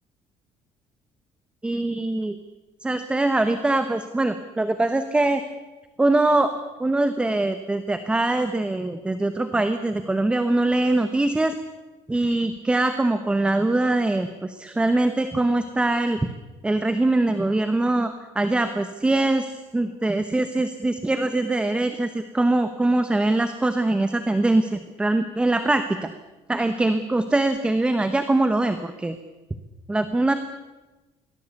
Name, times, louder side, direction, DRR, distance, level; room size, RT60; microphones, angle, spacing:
voice 1, 1.6-2.4 2.8-5.4 6.0-11.5 12.1-16.3 16.6-26.1 26.5-29.2 29.9-30.3, right 2 dB, 10° right, 10 dB, 1.0 m, -23 dB
23.5 x 18.0 x 8.3 m, 1.1 s
cardioid pair, 170°, 12 cm